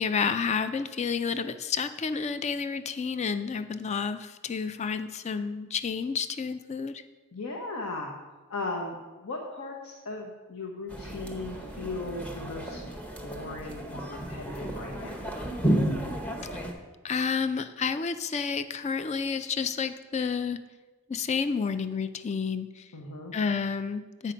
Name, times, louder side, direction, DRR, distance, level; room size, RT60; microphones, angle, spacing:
voice 1, 0.0-7.0 16.5-16.6 17.0-20.6 21.1-22.9 23.3-24.3, left 5 dB, 30° left, 11 dB, 0.3 m, -30 dB
voice 2, 7.3-8.1 8.5-12.8 13.2-15.3 22.9-23.3, left 2 dB, 70° left, 0 dB, 1.0 m, -37 dB
sound 1, 10.9-16.7, right 1 dB, 5° left, 0.8 m, -32 dB
8.1 x 5.8 x 5.1 m, 1.3 s
head